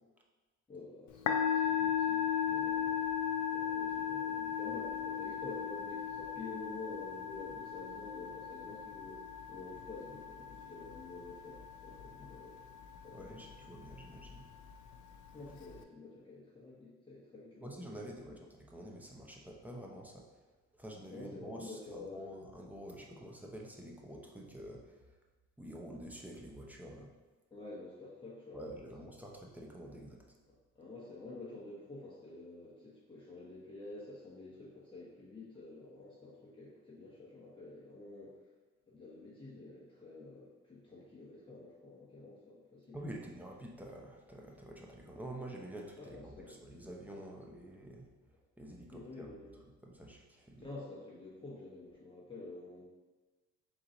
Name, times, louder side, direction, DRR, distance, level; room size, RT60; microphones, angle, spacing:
voice 1, 0.7-12.6 13.0-13.5 15.3-18.0 18.2-18.5 21.1-22.4 27.5-28.6 30.8-38.3 38.9-43.0 46.0-46.6 48.9-49.6 50.6-52.8, left 2 dB, 15° left, -8 dB, 1.0 m, -49 dB
Musical instrument, 1.1-15.8, left 8 dB, 75° left, 0.5 m, -37 dB
voice 2, 13.1-14.4 17.6-20.2 20.8-25.0 25.6-27.1 28.5-30.2 42.9-48.1 48.6-49.3 49.8-50.7, right 1 dB, 5° right, -1 dB, 0.7 m, -48 dB
3.8 x 3.1 x 3.9 m, 1.2 s
cardioid pair, 90°, 30 cm